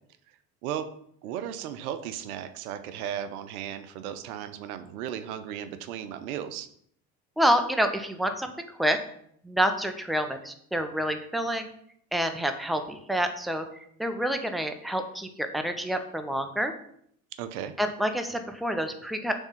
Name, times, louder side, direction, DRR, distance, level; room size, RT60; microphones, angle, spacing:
voice 1, 1.2-6.7 17.4-17.7, right 10 dB, 80° right, 10 dB, 0.8 m, -35 dB
voice 2, 7.4-9.0 9.4-11.7 12.1-13.7 14.0-16.7 17.8-19.3, equal, ahead, 6 dB, 0.9 m, -28 dB
7.1 x 3.6 x 5.8 m, 0.67 s
hypercardioid pair, 75°, 43 cm